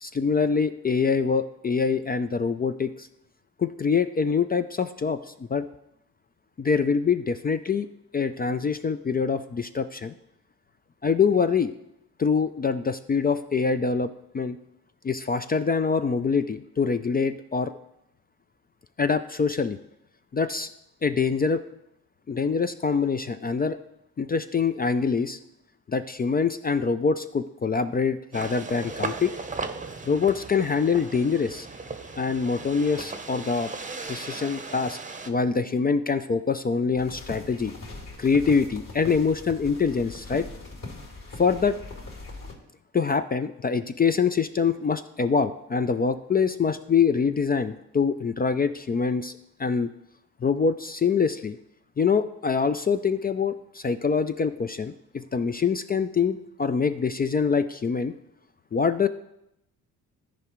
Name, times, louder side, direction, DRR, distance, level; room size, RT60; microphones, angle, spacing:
voice 1, 0.0-3.1 3.6-5.7 6.6-7.9 8.1-10.1 11.0-11.7 12.2-14.1 14.3-14.6 15.0-17.7 19.0-19.8 20.3-20.7 21.0-21.6 22.3-23.8 24.2-25.4 25.9-29.3 30.1-31.7 32.2-33.7 34.1-35.0 35.3-37.7 38.2-40.4 41.4-41.8 42.9-49.3 49.6-49.9 50.4-51.6 52.0-58.1 58.7-59.1, left 5 dB, 25° left, 10 dB, 0.4 m, -24 dB
sound 1, 28.3-35.3, right 4 dB, 20° right, 0.8 m, -37 dB
sound 2, 37.0-42.5, left 2 dB, 50° left, 3.0 m, -41 dB
13.5 x 4.9 x 3.1 m, 0.84 s
supercardioid pair, 65°, 40 cm